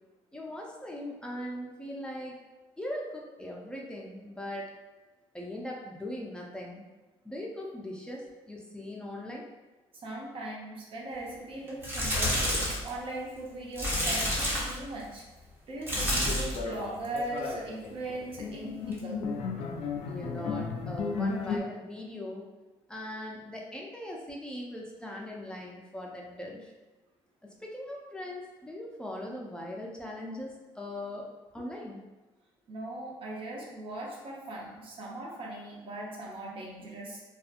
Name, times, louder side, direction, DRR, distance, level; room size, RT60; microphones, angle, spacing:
voice 1, 0.3-2.4 2.8-4.7 5.3-6.9 7.2-9.5 20.1-22.4 22.9-26.7 27.4-31.3 31.5-32.0, left 1 dB, 10° left, -2 dB, 0.4 m, -40 dB
voice 2, 10.0-12.4 12.8-15.3 15.7-19.2 32.7-37.2, right 1 dB, 50° right, -2 dB, 0.7 m, -39 dB
sound 1, 11.7-12.9 13.8-14.8 15.8-16.6 17.0-17.4 18.9-19.0, equal, 20° right, 0.8 m, -29 dB
sound 2, 16.2-21.6, left 4 dB, 65° left, 0.4 m, -34 dB
2.6 x 2.3 x 2.5 m, 1.1 s
cardioid pair, 100°, 12 cm